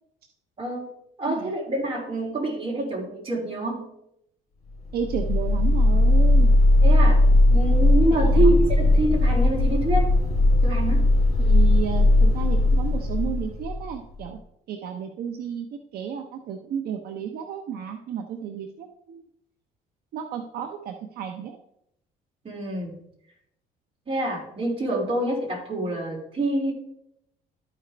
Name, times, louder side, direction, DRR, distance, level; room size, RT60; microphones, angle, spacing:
voice 1, 0.6-0.9 1.2-3.9 6.8-7.2 7.5-10.1 10.6-11.1 22.4-23.0 24.1-26.7, right 2 dB, 35° right, -1 dB, 2.9 m, -26 dB
voice 2, 1.2-1.6 4.9-6.5 8.1-8.5 11.4-14.4 14.7-19.2 20.1-21.6, right 8 dB, 65° right, 5 dB, 0.7 m, -32 dB
sound 1, 4.8-14.1, left 2 dB, 40° left, 3.2 m, -18 dB
12.5 x 5.0 x 3.3 m, 0.76 s
cardioid pair, 110°, 17 cm